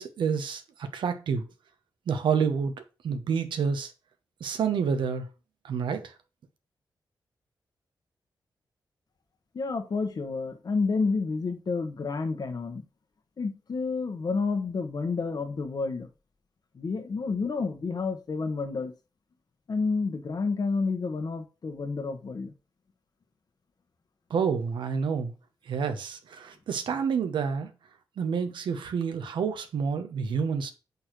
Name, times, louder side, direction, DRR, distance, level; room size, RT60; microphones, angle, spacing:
voice 1, 0.0-1.4 2.1-2.7 3.0-3.9 4.4-5.3 5.6-6.1 24.3-25.3 25.7-27.7 28.2-30.7, right 6 dB, 90° right, 1.1 m, -28 dB
voice 2, 9.5-12.8 13.4-16.1 16.7-18.9 19.7-22.5, left 4 dB, 55° left, 1.3 m, -30 dB
5.4 x 4.3 x 6.1 m
cardioid pair, 70°, 8 cm